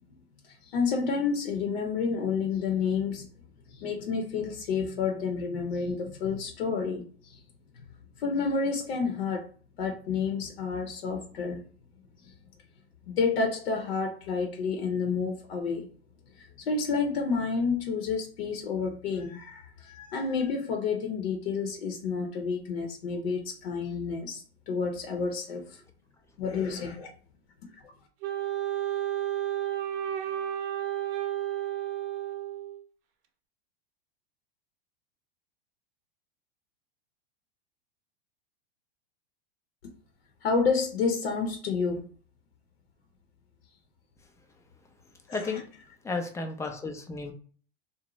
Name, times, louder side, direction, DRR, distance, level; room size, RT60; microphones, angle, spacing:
voice 1, 0.4-3.3 3.7-7.4 8.2-9.5 9.8-11.6 12.2-12.3 13.1-15.9 16.4-25.8 26.4-27.1 40.4-42.1 45.3-45.4, left 5 dB, 75° left, 0.7 m, -30 dB
Wind instrument woodwind instrument, 28.2-32.8, right 12 dB, 60° right, 0.6 m, -32 dB
voice 2, 45.3-45.7 46.0-47.3, left 3 dB, 10° left, 0.4 m, -33 dB
2.5 x 2.0 x 3.0 m
hypercardioid pair, 110°, 31 cm